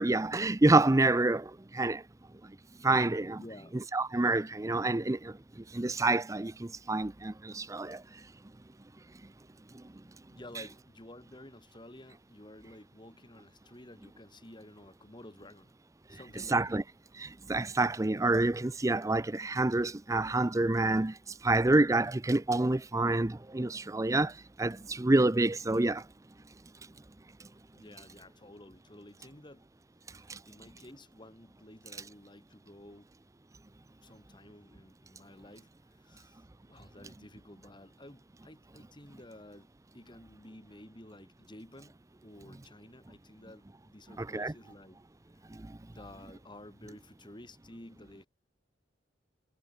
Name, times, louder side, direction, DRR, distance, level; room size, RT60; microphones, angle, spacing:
voice 1, 0.0-2.0 2.8-3.4 3.9-8.0 16.5-16.8 17.1-21.2 21.4-26.1 30.3-30.4 44.2-44.5 45.5-45.8, right 2 dB, 15° right, 0.5 m, -28 dB
voice 2, 3.4-3.8 10.3-15.7 16.1-16.8 27.7-29.7 30.1-33.1 34.0-42.0 42.2-45.0 45.9-48.3, left 1 dB, 25° left, 3.7 m, -52 dB
head